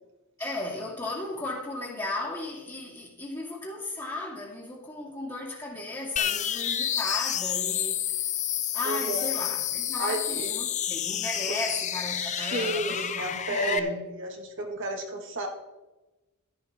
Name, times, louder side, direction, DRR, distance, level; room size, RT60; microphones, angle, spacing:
voice 1, 0.4-8.0 8.7-14.0, left 2 dB, 15° left, -7 dB, 2.1 m, -35 dB
sound 1, 6.2-13.8, left 10 dB, 35° left, 0.5 m, -29 dB
voice 2, 8.8-9.3 10.0-10.5 11.5-11.6 12.2-15.5, right 1 dB, 60° right, 2 dB, 1.9 m, -32 dB
12.5 x 11.0 x 3.7 m, 1.1 s
head